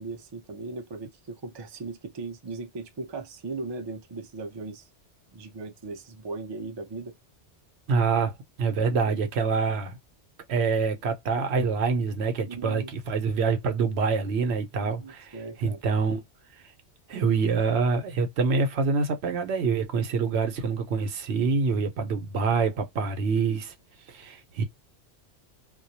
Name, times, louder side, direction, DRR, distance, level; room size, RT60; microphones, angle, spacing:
voice 1, 0.0-4.9 5.3-7.1 8.9-9.3 12.5-12.9 14.8-15.8, right 3 dB, 40° right, 0.3 m, -38 dB
voice 2, 7.9-10.0 10.5-16.2 17.1-23.7 24.1-24.6, right 5 dB, 70° right, 0.9 m, -26 dB
2.3 x 2.1 x 2.7 m
omnidirectional pair, 1.2 m